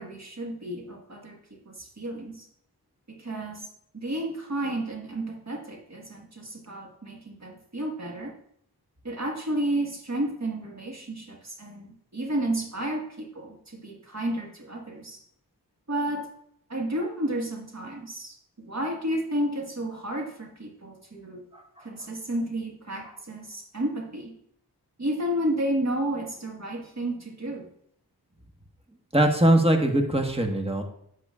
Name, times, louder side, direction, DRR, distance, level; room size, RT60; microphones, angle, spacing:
voice 1, 0.0-1.4 1.6-2.5 3.1-3.6 3.9-8.4 9.0-15.2 15.9-16.3 16.7-21.4 21.8-24.3 25.0-27.7, right 1 dB, 45° right, 0 dB, 1.6 m, -32 dB
voice 2, 29.1-30.8, right 1 dB, 15° right, 4 dB, 1.3 m, -21 dB
8.0 x 8.0 x 2.4 m, 0.70 s
cardioid pair, 45°, 39 cm